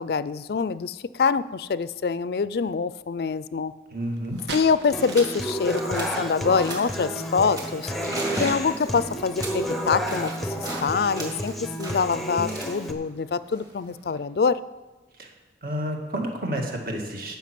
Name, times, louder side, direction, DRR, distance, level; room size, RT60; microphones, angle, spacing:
voice 1, 0.0-3.7 4.5-7.9 8.4-14.6, left 5 dB, 60° left, 16 dB, 0.4 m, -25 dB
voice 2, 3.9-4.4 15.2-15.3 15.6-17.4, right 1 dB, 55° right, 2 dB, 1.9 m, -30 dB
sound 1, 4.0-4.1 4.3-4.6 5.0-5.4 5.7-6.2 6.6-7.0 7.5-10.9 11.1-14.2, right 1 dB, 20° right, 2.0 m, -36 dB
sound 2, 4.2-7.9 8.7-9.0, right 3 dB, 75° right, 1.3 m, -39 dB
Human voice / Acoustic guitar, 4.9-12.9, equal, ahead, 0.7 m, -31 dB
12.5 x 5.8 x 7.6 m, 1.2 s
head